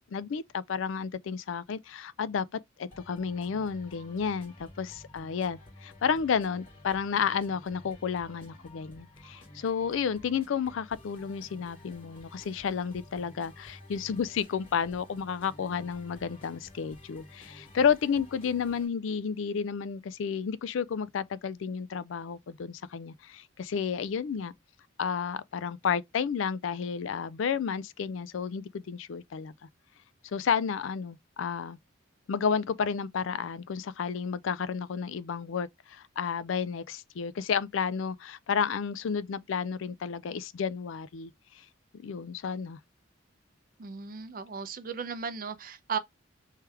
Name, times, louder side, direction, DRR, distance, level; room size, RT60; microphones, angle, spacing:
voice 1, 0.1-24.5 25.0-29.5 30.2-31.8 32.3-41.3 41.9-42.8, left 6 dB, 75° left, 0.4 m, -31 dB
sound 1, 2.9-18.9, left 1 dB, 25° left, 2.0 m, -52 dB
voice 2, 43.8-46.0, right 6 dB, 45° right, 0.6 m, -36 dB
3.3 x 3.2 x 3.3 m
head